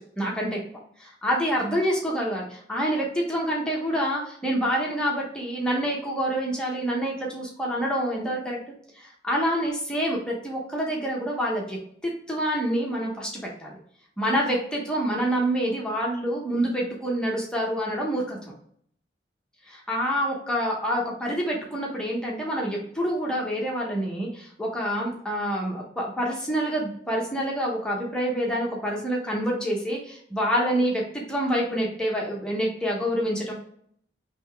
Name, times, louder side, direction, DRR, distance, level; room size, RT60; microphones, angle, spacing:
voice 1, 0.2-0.6 1.0-8.6 8.9-11.8 12.0-13.3 13.6-13.8 14.2-18.4 19.7-33.5, equal, 5° left, -3 dB, 0.8 m, -27 dB
3.8 x 3.2 x 3.3 m, 0.65 s
head